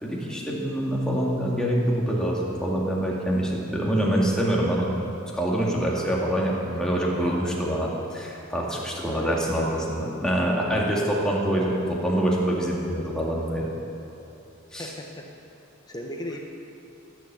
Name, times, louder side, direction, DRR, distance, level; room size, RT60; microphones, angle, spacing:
voice 1, 0.0-4.9 5.3-13.7 14.7-14.9, right 1 dB, 5° left, -4 dB, 2.0 m, -25 dB
voice 2, 9.1-9.4 14.8-15.3 15.9-16.4, equal, 20° left, 1 dB, 1.1 m, -35 dB
17.5 x 7.4 x 8.2 m, 2.9 s
head